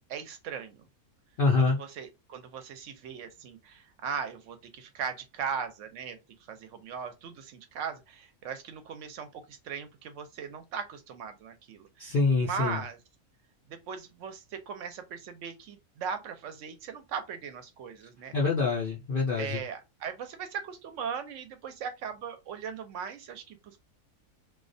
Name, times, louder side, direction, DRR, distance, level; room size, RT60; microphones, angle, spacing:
voice 1, 0.1-0.8 1.6-6.2 6.5-13.0 13.7-18.3 19.4-23.8, right 7 dB, 70° right, 0.8 m, -38 dB
voice 2, 1.4-1.8 12.0-12.8 18.3-19.6, left 3 dB, 70° left, 0.5 m, -25 dB
2.3 x 2.1 x 2.5 m
omnidirectional pair, 1.5 m